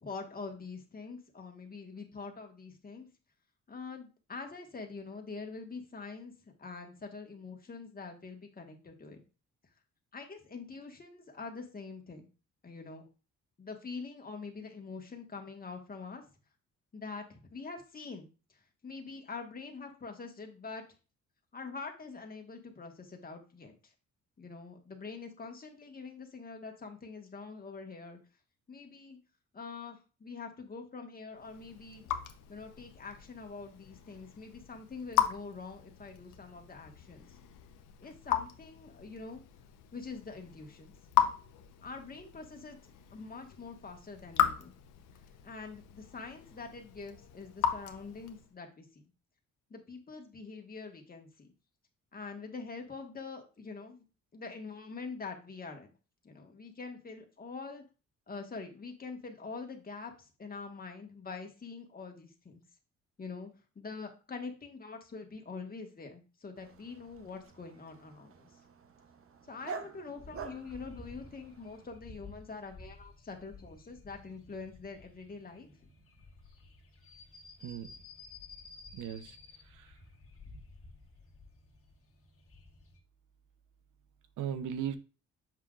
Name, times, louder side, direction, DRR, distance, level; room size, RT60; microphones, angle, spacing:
voice 1, 0.0-3.1 3.7-6.3 6.6-9.2 10.1-12.3 12.6-13.0 13.6-16.2 16.9-18.3 18.8-20.8 21.5-23.9 24.4-28.2 28.7-29.2 29.5-32.1 32.5-37.4 38.0-39.4 39.9-40.9 41.8-44.7 45.4-49.0 49.7-51.5 52.1-54.0 54.3-55.9 56.2-57.8 58.3-62.6 63.2-63.5 63.8-68.5 69.4-75.8, left 4 dB, 30° left, 1.6 m, -45 dB
Raindrop / Drip, 31.4-48.5, left 10 dB, 85° left, 0.9 m, -37 dB
Dog, 66.6-71.9, right 5 dB, 45° right, 0.9 m, -48 dB
sound 1, 70.2-83.0, left 3 dB, 45° left, 1.7 m, -54 dB
voice 2, 78.9-79.4 79.7-79.9 84.4-85.0, right 9 dB, 80° right, 0.9 m, -37 dB
7.3 x 5.8 x 2.5 m
cardioid pair, 90°, 30 cm